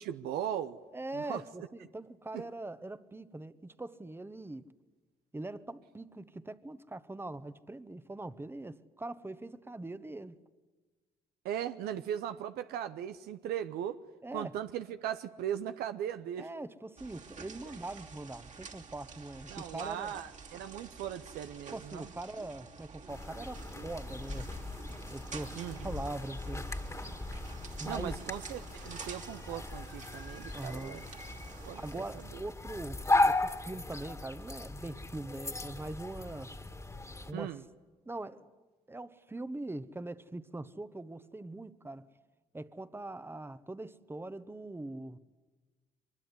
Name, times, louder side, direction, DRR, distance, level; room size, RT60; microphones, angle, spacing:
voice 1, 0.0-0.8 1.1-1.4 2.3-2.4 11.4-14.0 14.3-16.5 19.5-22.1 25.5-26.0 27.8-31.0 31.6-32.0 32.3-32.4 37.3-37.6, right 10 dB, 75° right, 10 dB, 0.8 m, -38 dB
voice 2, 0.9-4.7 5.3-10.3 14.2-14.5 16.4-20.1 21.7-24.5 25.1-26.7 27.8-28.1 30.5-31.0 31.7-36.5 37.3-37.6 38.0-38.5 38.9-42.1 42.5-45.2, right 2 dB, 15° right, 13 dB, 1.2 m, -42 dB
sound 1, 17.0-32.3, right 5 dB, 45° right, 2.9 m, -49 dB
sound 2, 23.1-37.3, left 2 dB, 20° left, 2.1 m, -36 dB
23.5 x 21.0 x 9.7 m, 1.3 s
supercardioid pair, 65°, 16 cm